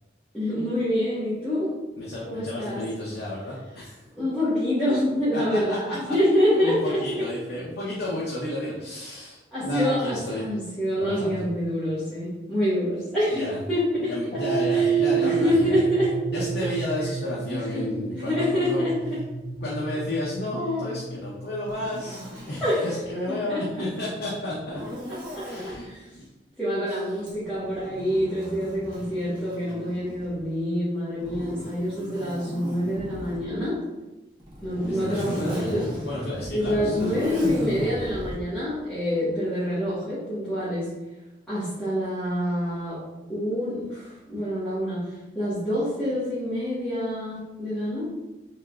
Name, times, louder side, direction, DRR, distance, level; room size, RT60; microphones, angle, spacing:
voice 1, 0.3-1.8 2.3-2.8 4.2-7.2 9.5-14.1 14.7-16.1 17.5-17.9 18.1-19.2 22.6-23.0 23.3-23.8 25.3-26.1 26.6-33.8 34.6-35.8 36.5-40.9 41.5-43.0 43.3-48.1, left 1 dB, 5° left, -14 dB, 1.2 m, -26 dB
voice 2, 2.0-4.0 5.3-6.1 6.5-10.4 10.9-11.5 13.3-13.6 14.0-15.8 16.3-18.9 19.6-24.8 25.4-25.9 26.1-26.2 26.9-27.0 34.9-37.5, left 1 dB, 65° left, -6 dB, 0.7 m, -32 dB
sound 1, 14.3-22.8, right 7 dB, 35° left, 1.0 m, -29 dB
Zipper (clothing), 21.6-23.1 24.7-25.8 27.2-30.4 31.2-33.5 34.4-38.4, equal, 25° right, 0.8 m, -36 dB
3.7 x 3.5 x 2.3 m, 1.0 s
head